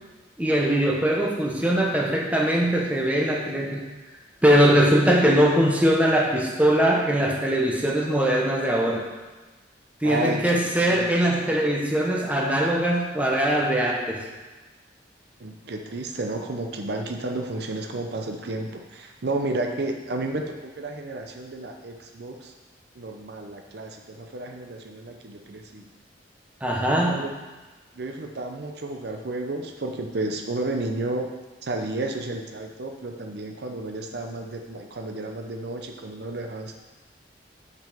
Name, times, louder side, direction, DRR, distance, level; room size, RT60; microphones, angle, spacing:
voice 1, 0.4-3.9 4.4-9.0 10.0-14.2 26.6-27.3, right 1 dB, 10° right, -1 dB, 1.0 m, -21 dB
voice 2, 10.0-11.1 15.4-22.5 22.9-25.9 26.8-27.3 27.9-31.3 31.6-36.8, right 2 dB, 60° right, 3 dB, 0.6 m, -32 dB
6.3 x 5.3 x 6.8 m, 1.3 s
head